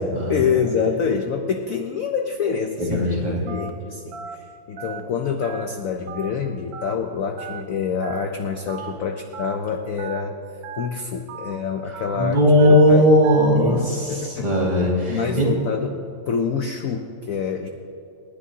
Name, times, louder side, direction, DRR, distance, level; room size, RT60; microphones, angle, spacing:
voice 1, 0.3-10.4 10.7-13.1 13.6-14.5 15.1-16.0 16.3-17.7, left 6 dB, 60° left, 5 dB, 0.9 m, -26 dB
voice 2, 2.8-3.4 12.1-14.1 14.4-15.5, equal, 20° right, -5 dB, 2.7 m, -17 dB
Telephone, 3.5-3.7 4.1-4.3 4.8-5.0 5.4-5.7 6.1-6.3 6.7-7.0 7.4-7.6 8.0-8.3 8.7-8.9 9.3-9.6 10.0-10.2 10.6-10.9 11.3-11.5 11.9-12.2 12.6-12.8 13.2-13.5, right 6 dB, 60° right, 1.2 m, -35 dB
29.0 x 10.0 x 2.8 m, 2.6 s
omnidirectional pair, 2.0 m